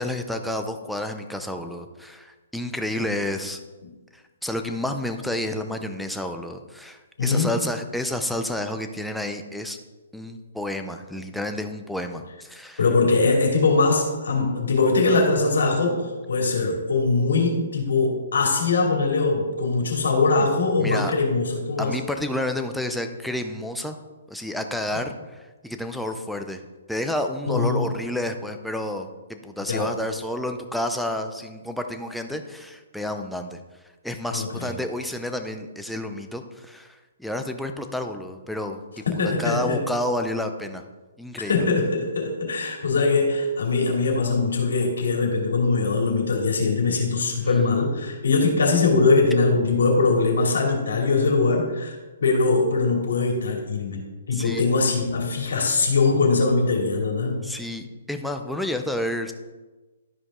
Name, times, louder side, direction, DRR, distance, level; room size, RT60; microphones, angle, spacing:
voice 1, 0.0-3.6 4.1-9.8 10.1-12.8 20.4-20.5 20.8-21.1 21.8-24.0 24.3-26.6 26.9-33.6 34.0-38.8 39.4-40.8 41.2-41.6 54.3-54.7 57.4-59.3, left 1 dB, ahead, 5 dB, 0.5 m, -30 dB
voice 2, 7.2-7.5 12.8-22.0 24.9-25.0 27.5-27.9 29.7-29.9 34.3-34.7 39.2-39.8 41.5-57.4, left 3 dB, 85° left, 0 dB, 2.6 m, -22 dB
12.5 x 5.2 x 3.7 m, 1.2 s
hypercardioid pair, 155°, 0 cm